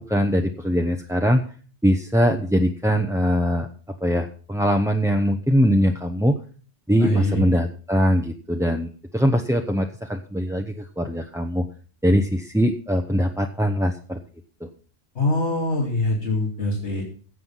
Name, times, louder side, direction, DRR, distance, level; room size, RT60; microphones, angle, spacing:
voice 1, 0.0-1.4 1.8-3.7 4.0-6.4 6.9-11.7 12.0-14.2 14.6-14.7, equal, 5° right, 3 dB, 0.6 m, -22 dB
voice 2, 7.0-7.4 15.1-17.0, left 2 dB, 80° left, -1 dB, 2.9 m, -24 dB
16.0 x 7.7 x 5.5 m, 0.41 s
omnidirectional pair, 1.1 m